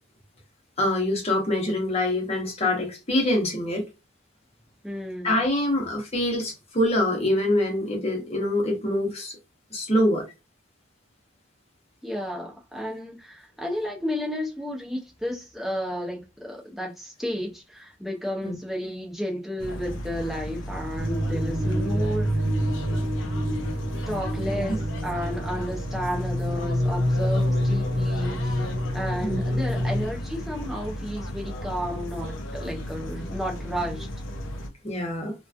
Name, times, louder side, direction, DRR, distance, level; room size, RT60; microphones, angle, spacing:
voice 1, 0.8-3.8 5.2-9.4 9.7-10.3 18.4-18.6 24.4-24.8 29.2-29.4 34.8-35.3, left 1 dB, 30° left, 0.8 m, -25 dB
voice 2, 4.8-5.4 5.7-5.9 12.0-22.4 22.9-23.1 24.1-28.6 28.9-34.1, equal, ahead, 0.6 m, -32 dB
sound 1, 19.6-34.7, equal, 65° left, 0.5 m, -35 dB
sound 2, 21.0-30.0, equal, 50° right, 0.9 m, -27 dB
2.9 x 2.2 x 2.4 m
head